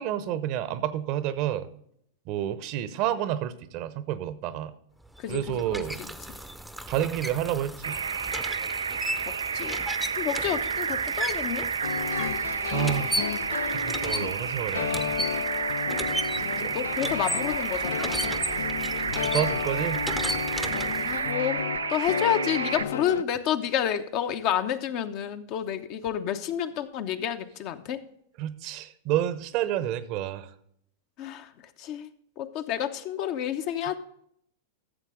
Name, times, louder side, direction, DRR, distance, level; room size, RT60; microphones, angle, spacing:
voice 1, 0.0-1.7 2.3-4.7 5.3-6.0 6.9-8.0 12.7-13.4 13.7-15.2 16.6-16.8 19.2-20.0 28.4-30.5, right 12 dB, 50° right, 15 dB, 0.8 m, -29 dB
sound 1, 5.1-21.3, equal, ahead, 0.7 m, -36 dB
voice 2, 5.2-5.8 9.2-9.9 10.2-11.7 16.7-18.4 21.0-28.0 31.2-31.5 31.8-32.1 32.4-34.0, left 9 dB, 45° left, 9 dB, 0.8 m, -30 dB
sound 2, 7.8-22.8, right 6 dB, 80° right, 0.3 m, -31 dB
sound 3, 11.8-23.2, left 8 dB, 75° left, 0.3 m, -33 dB
13.0 x 7.4 x 3.7 m, 0.71 s
hypercardioid pair, 95°, 0 cm